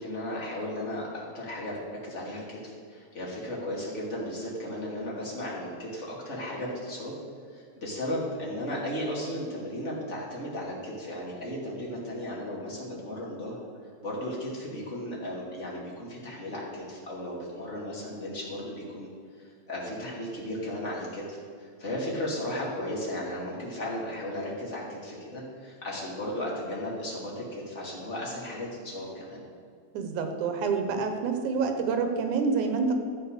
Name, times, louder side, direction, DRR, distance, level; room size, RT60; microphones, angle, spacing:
voice 1, 0.0-7.1 7.5-13.6 14.0-19.1 19.4-29.4, left 1 dB, 25° left, -4 dB, 2.9 m, -35 dB
voice 2, 29.9-32.9, right 5 dB, 85° right, 6 dB, 2.5 m, -27 dB
12.5 x 7.4 x 6.6 m, 2.3 s
omnidirectional pair, 3.4 m